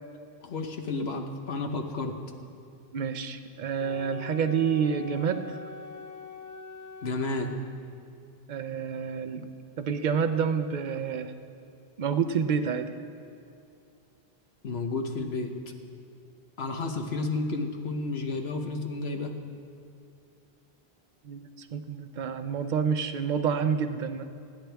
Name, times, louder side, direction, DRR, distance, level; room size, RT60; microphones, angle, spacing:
voice 1, 0.4-2.2 7.0-7.6 14.6-15.5 16.6-19.3, left 3 dB, 75° left, 4 dB, 1.3 m, -31 dB
voice 2, 2.9-5.5 8.5-9.5 9.8-11.3 12.0-12.9 21.2-24.2, right 6 dB, 50° right, 9 dB, 0.7 m, -28 dB
Wind instrument woodwind instrument, 3.7-7.6, left 4 dB, 30° left, 0.3 m, -43 dB
25.5 x 10.0 x 3.5 m, 2.4 s
omnidirectional pair, 1.1 m